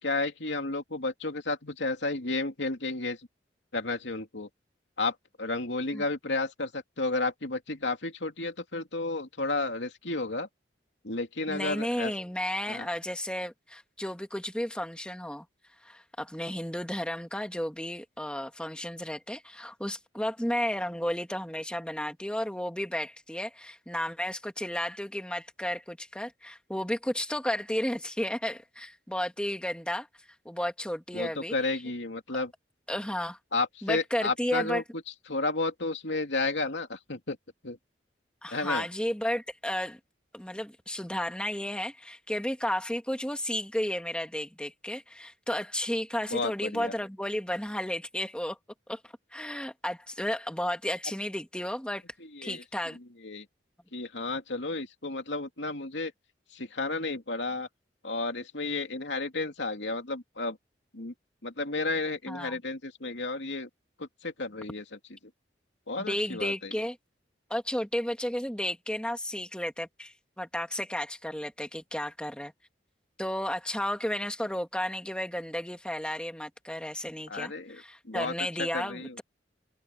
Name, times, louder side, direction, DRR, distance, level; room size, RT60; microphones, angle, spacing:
voice 1, 0.0-3.2 3.7-4.5 5.0-10.5 11.0-12.1 12.7-12.9 31.1-32.5 33.5-34.8 35.3-37.4 37.6-37.8 38.5-38.9 46.3-46.9 52.3-52.6 53.2-53.5 53.9-56.1 56.5-57.7 58.0-60.6 60.9-61.1 61.4-63.7 64.0-64.8 65.9-66.8 77.3-78.3 78.6-79.2, left 3 dB, 80° left, 2.7 m, -32 dB
voice 2, 11.5-15.5 15.8-30.1 30.4-31.5 32.9-33.4 33.8-34.8 38.4-40.0 40.3-48.6 48.9-49.0 49.3-52.0 52.4-53.0 62.3-62.6 66.0-67.0 67.5-72.5 73.2-79.2, left 1 dB, 5° left, 2.3 m, -33 dB
open air
head